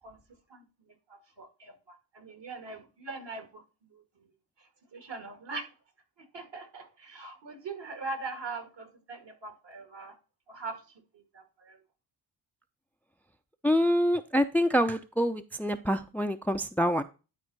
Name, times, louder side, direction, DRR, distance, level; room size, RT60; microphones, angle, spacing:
voice 1, 1.1-3.6 3.9-4.0 4.6-5.7 6.2-10.2 10.5-10.8 11.1-11.8, right 3 dB, 55° right, 2.1 m, -41 dB
voice 2, 13.6-17.0, equal, 5° left, 0.6 m, -26 dB
11.0 x 4.5 x 4.0 m
supercardioid pair, 45°, 49 cm